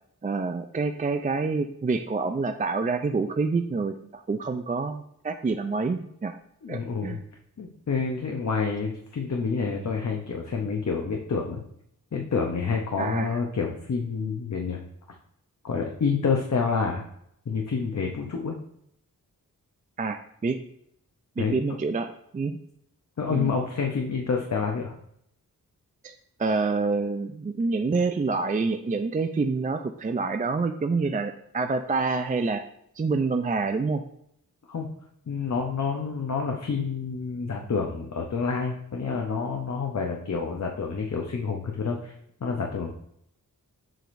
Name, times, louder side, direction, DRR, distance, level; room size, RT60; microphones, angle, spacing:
voice 1, 0.2-6.4 6.7-7.2 13.0-13.4 20.0-20.6 21.4-22.6 23.3-23.5 26.0-26.1 26.4-32.6 33.0-34.0, right 4 dB, 25° right, 7 dB, 0.4 m, -27 dB
voice 2, 6.6-7.2 7.6-11.6 12.1-14.8 15.6-17.0 17.5-18.6 21.4-21.6 23.2-24.9 34.7-34.9 35.3-42.1 42.4-42.9, left 5 dB, 50° left, 1 dB, 0.9 m, -28 dB
7.6 x 4.9 x 2.6 m, 0.72 s
cardioid pair, 70°, 35 cm